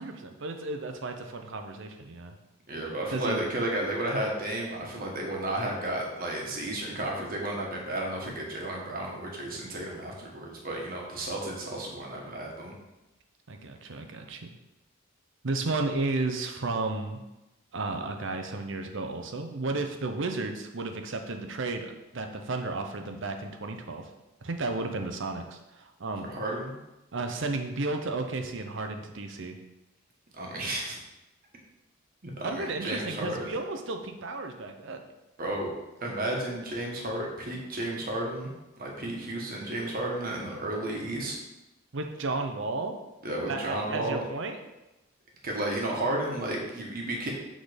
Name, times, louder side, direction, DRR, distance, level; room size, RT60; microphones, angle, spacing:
voice 1, 0.0-2.3 3.1-3.4 13.5-14.5 15.4-17.2 17.7-24.1 24.4-26.3 27.1-29.6 32.4-35.0 41.9-43.0 43.5-44.6, right 3 dB, 60° right, 5 dB, 0.7 m, -33 dB
voice 2, 2.7-12.7 26.2-26.7 30.4-31.0 32.2-33.5 35.4-38.5 38.8-41.3 43.2-44.2 45.4-47.3, right 1 dB, 45° right, -1 dB, 1.4 m, -32 dB
6.2 x 3.9 x 5.1 m, 0.99 s
head